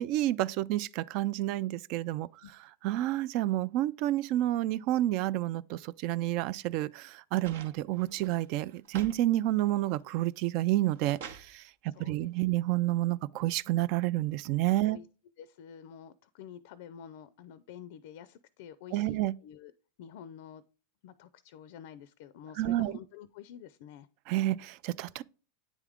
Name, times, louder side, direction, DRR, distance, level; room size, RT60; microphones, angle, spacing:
voice 1, 0.0-2.3 2.8-11.7 12.0-15.0 18.9-19.3 22.6-23.0 24.3-25.2, right 15 dB, 55° right, 0.3 m, -29 dB
sound 1, 7.4-9.2 9.6-10.1 10.6-11.5 12.7-12.8, right 7 dB, 75° right, 0.8 m, -47 dB
voice 2, 11.9-12.8 14.8-15.1 15.4-19.7 20.0-20.6 21.0-24.1, left 9 dB, 65° left, 0.4 m, -49 dB
9.1 x 3.6 x 3.5 m
hypercardioid pair, 105°, 0 cm